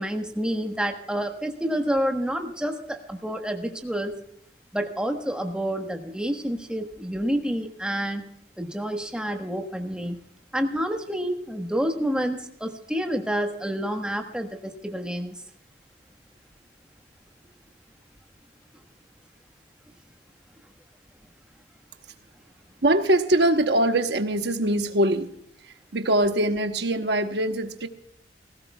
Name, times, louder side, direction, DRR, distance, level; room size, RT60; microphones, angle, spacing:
voice 1, 0.0-4.1 4.7-8.2 8.6-10.2 10.5-15.3, equal, 5° right, 4 dB, 1.3 m, -28 dB
voice 2, 22.8-25.3 25.9-27.9, right 1 dB, 70° right, 7 dB, 1.1 m, -22 dB
19.0 x 16.5 x 2.3 m, 0.70 s
head